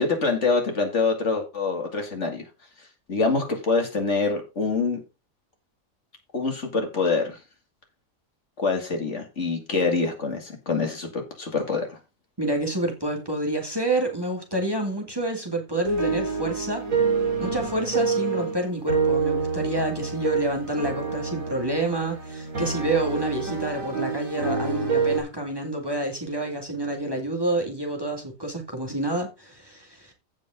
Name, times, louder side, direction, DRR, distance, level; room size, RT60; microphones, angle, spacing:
voice 1, 0.0-2.4 3.1-5.0 6.3-7.4 8.6-12.0, left 4 dB, 60° left, 2.6 m, -25 dB
voice 2, 12.4-16.8 17.4-30.1, right 2 dB, 15° right, 2.0 m, -28 dB
sound 1, 15.8-25.2, right 5 dB, 75° right, 3.3 m, -27 dB
15.5 x 5.3 x 3.7 m
omnidirectional pair, 1.4 m